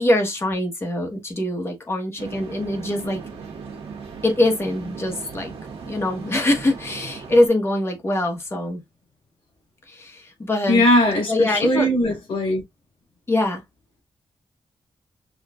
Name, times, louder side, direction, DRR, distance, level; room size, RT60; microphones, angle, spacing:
voice 1, 0.0-3.2 4.2-5.5 5.8-8.8 9.9-10.8 11.3-11.9 13.3-13.6, left 1 dB, 25° left, 1.2 m, -23 dB
sound 1, 2.2-7.5, right 5 dB, 80° right, 1.3 m, -37 dB
voice 2, 10.7-12.6, left 1 dB, 65° left, 3.4 m, -19 dB
6.3 x 2.5 x 2.4 m
wide cardioid pair, 135°, 10 cm